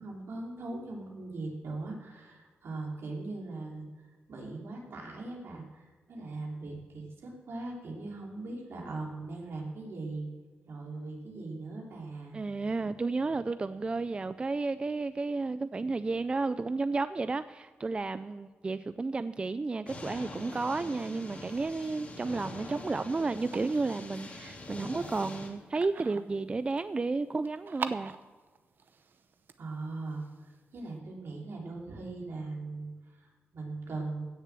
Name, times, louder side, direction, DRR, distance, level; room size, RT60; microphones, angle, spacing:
voice 1, 0.0-3.9 4.3-10.3 10.7-12.4 29.6-30.2 30.7-34.2, right 3 dB, 70° right, -1 dB, 3.1 m, -40 dB
voice 2, 12.3-28.1, right 3 dB, 25° right, 13 dB, 0.3 m, -32 dB
sound 1, 19.9-25.5, left 2 dB, 30° left, 2.2 m, -44 dB
sound 2, 21.6-31.0, right 5 dB, 55° right, 0.7 m, -46 dB
16.0 x 6.9 x 7.5 m, 1.4 s
wide cardioid pair, 140°, 4 cm